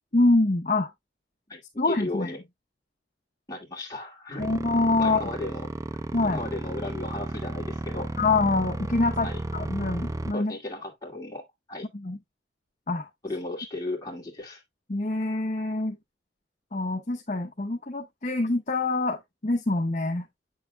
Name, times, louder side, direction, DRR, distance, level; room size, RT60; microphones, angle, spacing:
voice 1, 0.1-0.9 1.8-2.3 4.4-5.2 6.1-6.4 8.2-10.6 11.9-12.2 12.9-13.1 14.9-16.0 16.7-20.2, left 2 dB, 40° left, 0.8 m, -25 dB
voice 2, 1.5-2.4 3.5-4.5 5.0-5.7 6.2-8.1 9.2-9.4 10.3-11.9 13.2-14.6, left 2 dB, 20° left, 2.3 m, -35 dB
sound 1, 4.4-10.3, right 2 dB, 15° right, 0.3 m, -33 dB
7.8 x 6.6 x 2.2 m
head